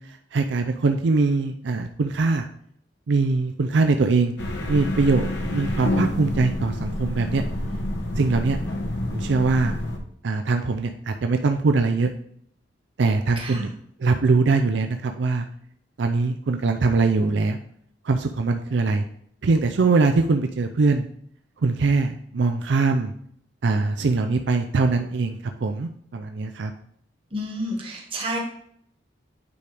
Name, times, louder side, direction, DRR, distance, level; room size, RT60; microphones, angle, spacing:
voice 1, 0.3-2.5 3.1-4.4 4.7-7.4 8.2-8.6 9.1-9.8 10.2-12.1 13.0-13.7 14.0-15.4 16.0-17.6 18.0-19.0 19.4-21.1 21.6-23.1 23.6-26.7, right 3 dB, 70° right, 6 dB, 0.4 m, -22 dB
sound 1, 4.4-10.0, left 1 dB, 70° left, 1.1 m, -28 dB
voice 2, 13.4-13.7 27.3-28.4, equal, 30° right, 1 dB, 1.4 m, -30 dB
9.3 x 4.9 x 3.4 m, 0.66 s
head